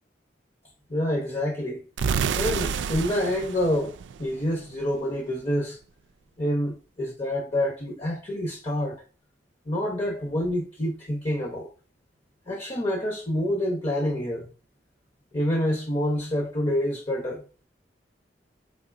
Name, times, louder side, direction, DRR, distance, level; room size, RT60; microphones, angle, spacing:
voice 1, 0.9-1.8 2.4-5.8 6.4-9.0 9.6-11.7 12.5-14.5 15.3-17.4, left 1 dB, 35° left, 0.9 m, -27 dB
sound 1, 2.0-4.8, right 6 dB, 85° right, 0.3 m, -29 dB
4.8 x 3.5 x 2.5 m
head